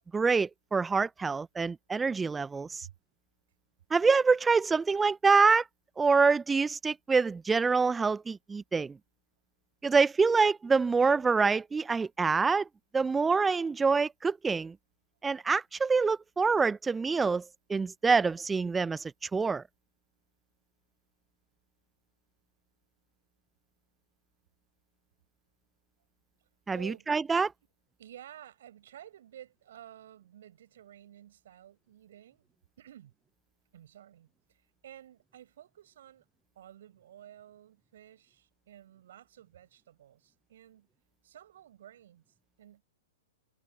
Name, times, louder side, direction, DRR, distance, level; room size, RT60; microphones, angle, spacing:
voice 1, 0.1-2.9 3.9-5.6 6.0-9.0 9.8-12.7 12.9-14.7 15.2-17.4 17.7-19.6 26.7-27.5, right 4 dB, 10° right, 1.0 m, -26 dB
voice 2, 26.7-27.1 28.0-32.5 32.8-33.1 33.7-36.3 36.6-40.9 41.2-42.2 42.6-42.8, right 11 dB, 60° right, 7.3 m, -52 dB
figure-of-eight pair, 105°, 0 cm